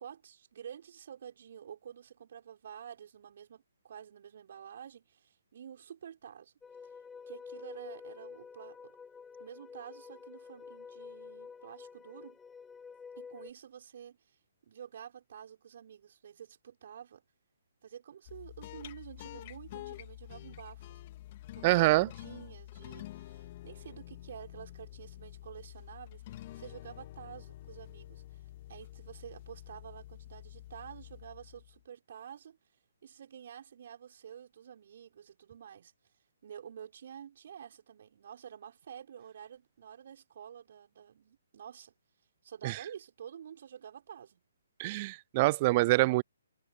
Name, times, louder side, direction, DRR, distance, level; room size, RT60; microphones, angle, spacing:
voice 1, 0.0-6.5 7.3-9.0 9.4-12.4 13.2-14.4 14.7-17.2 17.8-21.0 21.5-28.4 28.7-32.6 33.0-35.9 36.4-41.9 42.4-44.4, right 8 dB, 50° right, 6.2 m, -49 dB
sound 1, 6.6-13.5, left 5 dB, 10° left, 1.1 m, -49 dB
sound 2, 18.2-31.8, left 15 dB, 40° left, 2.5 m, -48 dB
voice 2, 21.6-22.1 42.6-42.8 44.8-46.2, right 20 dB, 30° right, 0.4 m, -25 dB
figure-of-eight pair, 140°, 0 cm